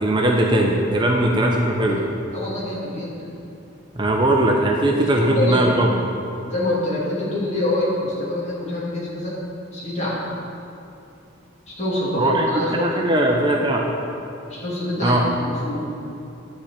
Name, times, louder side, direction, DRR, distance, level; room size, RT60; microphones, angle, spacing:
voice 1, 0.0-2.0 4.0-6.0 12.2-12.4 12.8-13.8 15.0-15.2, right 1 dB, 25° right, 0 dB, 0.6 m, -19 dB
voice 2, 2.3-3.3 4.9-5.7 6.5-9.4 9.7-10.2 11.7-13.2 14.5-15.9, left 1 dB, 35° left, -6 dB, 2.4 m, -26 dB
11.0 x 4.4 x 6.8 m, 2.8 s
head